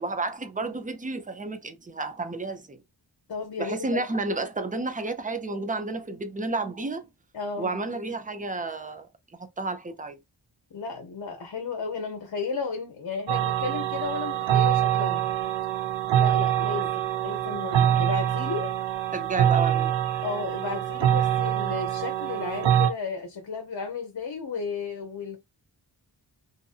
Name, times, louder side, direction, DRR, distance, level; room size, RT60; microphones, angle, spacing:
voice 1, 0.0-2.8 3.6-7.1 7.6-10.2 19.1-19.9, right 3 dB, 20° right, 0.5 m, -31 dB
voice 2, 3.3-4.0 7.3-7.8 10.7-15.3 16.1-16.9 17.2-18.7 20.2-25.4, left 4 dB, 55° left, 0.8 m, -33 dB
sound 1, 13.3-22.9, right 10 dB, 85° right, 0.6 m, -25 dB
2.8 x 2.5 x 2.4 m
wide cardioid pair, 95°, 44 cm